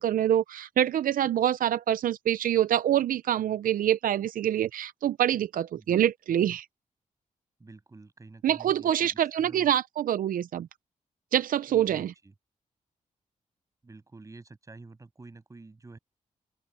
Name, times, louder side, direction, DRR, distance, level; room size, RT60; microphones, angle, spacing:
voice 1, 0.0-6.7 8.4-10.7 11.3-12.1, right 11 dB, 85° right, 0.5 m, -25 dB
voice 2, 7.6-9.7 11.7-12.3 13.8-16.0, right 3 dB, 25° right, 6.7 m, -49 dB
open air
wide cardioid pair, 150°, 14 cm